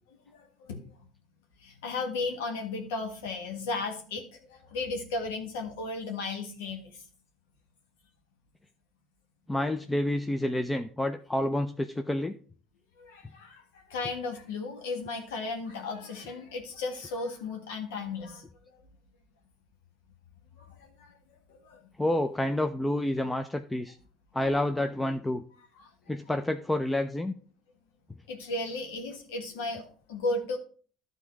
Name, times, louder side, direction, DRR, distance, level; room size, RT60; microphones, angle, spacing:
voice 1, 0.1-0.8 1.6-7.0 13.0-18.4 18.7-18.8 20.6-21.2 21.5-21.9 25.8-26.1 28.3-30.6, left 3 dB, 80° left, 3 dB, 1.6 m, -35 dB
voice 2, 9.5-12.4 22.0-24.0 24.3-25.4 26.1-27.3, left 1 dB, 10° left, 7 dB, 0.6 m, -29 dB
12.0 x 4.0 x 4.7 m, 0.42 s
hypercardioid pair, 70°, 0 cm